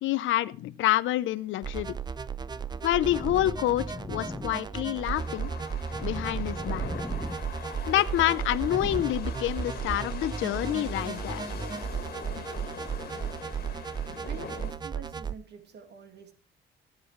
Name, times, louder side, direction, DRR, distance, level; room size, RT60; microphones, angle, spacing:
voice 1, 0.0-2.0 2.8-5.5 6.0-6.9 7.9-11.5 12.4-12.5, left 14 dB, 70° left, 0.6 m, -27 dB
sound 1, 1.6-15.3, right 6 dB, 20° right, 0.5 m, -35 dB
sound 2, 2.0-9.0, left 2 dB, 10° left, 1.0 m, -42 dB
sound 3, 5.0-14.7, left 6 dB, 50° left, 1.8 m, -42 dB
voice 2, 14.2-16.3, right 6 dB, 55° right, 1.9 m, -46 dB
13.5 x 9.4 x 3.1 m
cardioid pair, 100°, 21 cm